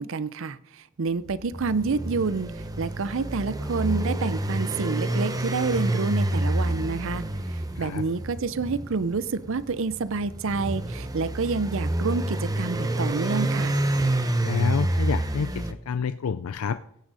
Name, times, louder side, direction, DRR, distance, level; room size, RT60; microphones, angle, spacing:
voice 1, 0.0-13.8, right 4 dB, 65° right, 16 dB, 0.6 m, -28 dB
sound 1, 1.3-15.7, right 1 dB, 15° right, 0.8 m, -28 dB
voice 2, 14.4-16.8, left 6 dB, 85° left, 12 dB, 0.4 m, -28 dB
16.5 x 6.5 x 4.9 m, 0.75 s
head